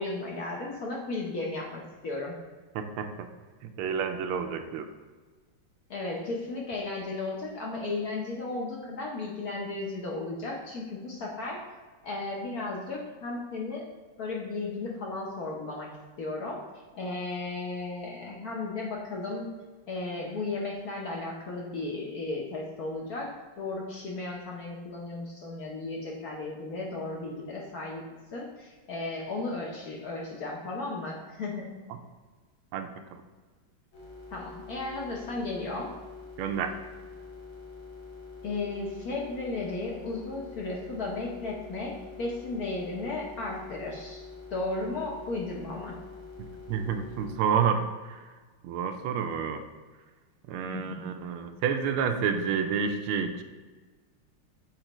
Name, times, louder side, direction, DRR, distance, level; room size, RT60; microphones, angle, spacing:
voice 1, 0.0-2.4 5.9-11.6 12.0-13.9 14.2-15.9 16.2-16.6 16.9-19.5 19.9-31.7 34.3-36.0 38.4-46.0 50.7-51.4, left 3 dB, 60° left, -2 dB, 1.1 m, -35 dB
voice 2, 2.7-3.3 3.8-4.9 31.9-32.0 32.7-33.2 36.4-36.7 46.4-48.2 48.6-49.6 50.5-53.4, right 7 dB, 85° right, 7 dB, 1.5 m, -29 dB
sound 1, 33.9-47.3, left 4 dB, 75° left, 2.1 m, -46 dB
7.6 x 4.4 x 3.0 m, 1.4 s
omnidirectional pair, 2.3 m